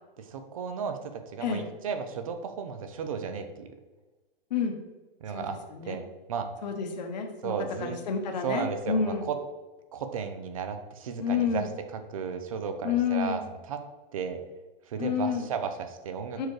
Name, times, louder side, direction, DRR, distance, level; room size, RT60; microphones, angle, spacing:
voice 1, 0.2-3.7 5.2-5.6 5.9-6.5 7.4-8.0 8.4-9.4 9.9-13.8 14.1-14.4 14.9-16.5, right 6 dB, 35° right, 8 dB, 0.6 m, -34 dB
voice 2, 6.6-7.5 7.8-9.3 11.2-11.6 12.8-13.4 15.0-15.5 16.4-16.5, left 6 dB, 45° left, 4 dB, 1.1 m, -29 dB
6.0 x 4.7 x 4.8 m, 1.2 s
hypercardioid pair, 170°, 29 cm